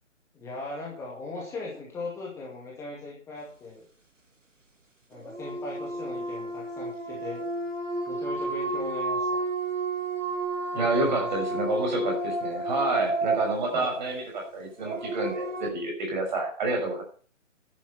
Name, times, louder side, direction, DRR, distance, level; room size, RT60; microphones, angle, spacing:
voice 1, 0.3-3.8 5.1-7.5 8.1-9.4 10.7-11.3 13.7-13.9, left 3 dB, 5° left, -4 dB, 2.2 m, -39 dB
sound 1, 5.1-15.7, right 2 dB, 75° right, 2.7 m, -31 dB
voice 2, 10.7-17.0, right 2 dB, 35° right, 1 dB, 6.4 m, -29 dB
11.5 x 10.5 x 5.8 m, 0.43 s
figure-of-eight pair, 140°, 38 cm